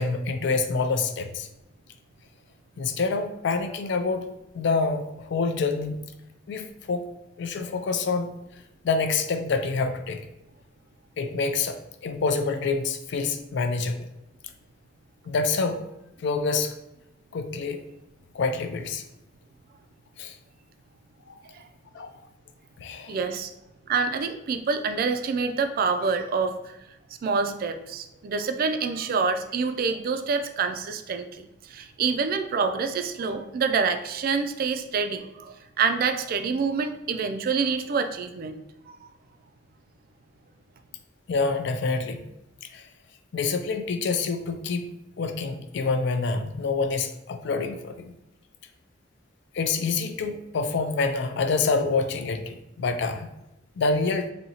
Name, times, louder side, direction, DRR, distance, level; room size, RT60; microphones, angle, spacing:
voice 1, 0.0-1.5 2.8-4.3 4.5-6.0 6.5-7.1 7.4-8.3 8.8-10.2 11.2-13.9 15.3-15.8 16.2-16.7 17.3-17.8 18.3-19.0 20.2-20.4 21.3-21.4 21.9-22.1 22.8-23.2 41.3-42.2 42.7-42.9 43.3-44.9 45.2-48.0 49.5-53.3 53.8-54.3, left 4 dB, 65° left, 7 dB, 0.4 m, -27 dB
voice 2, 23.1-23.5 23.9-26.7 27.2-38.6, right 5 dB, 50° right, 8 dB, 0.3 m, -27 dB
4.1 x 2.7 x 2.8 m, 0.90 s
head